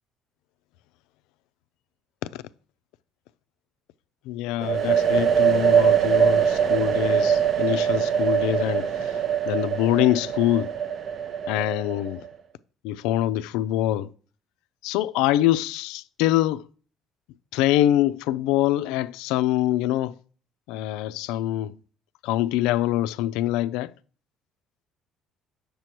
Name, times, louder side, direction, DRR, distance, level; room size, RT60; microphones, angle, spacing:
voice 1, 4.3-9.1 9.5-10.7 11.5-12.2 12.8-14.1 14.8-16.6 17.5-20.1 20.7-21.7 22.2-23.9, left 13 dB, 85° left, 0.3 m, -24 dB
sound 1, 4.6-12.3, right 8 dB, 50° right, 0.6 m, -22 dB
7.8 x 6.6 x 2.9 m
supercardioid pair, 90°, 0 cm